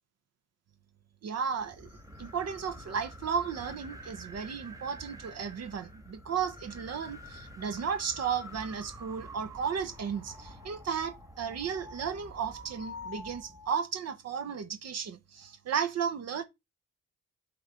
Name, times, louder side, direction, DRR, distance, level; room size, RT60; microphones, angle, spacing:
voice 1, 1.2-1.9 2.2-16.4, right 7 dB, 55° right, 1.0 m, -34 dB
sound 1, 1.6-13.7, left 1 dB, 10° right, 1.5 m, -47 dB
7.7 x 3.8 x 4.4 m
cardioid pair, 90°, 30 cm